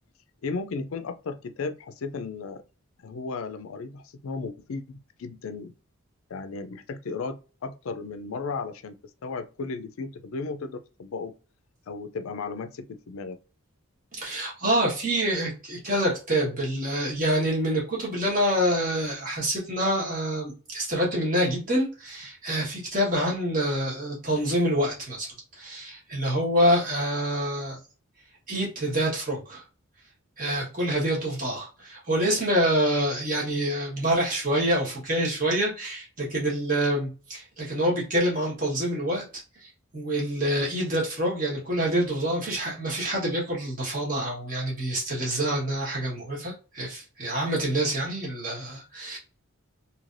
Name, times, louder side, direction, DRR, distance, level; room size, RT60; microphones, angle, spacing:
voice 1, 0.4-2.6 3.0-5.7 6.3-7.4 7.6-9.0 9.2-11.3 11.9-13.4, left 4 dB, 75° left, 0.4 m, -35 dB
voice 2, 14.1-27.8 28.5-29.6 30.4-39.2 39.6-49.2, right 1 dB, 40° right, 1.3 m, -26 dB
3.2 x 2.8 x 2.5 m
head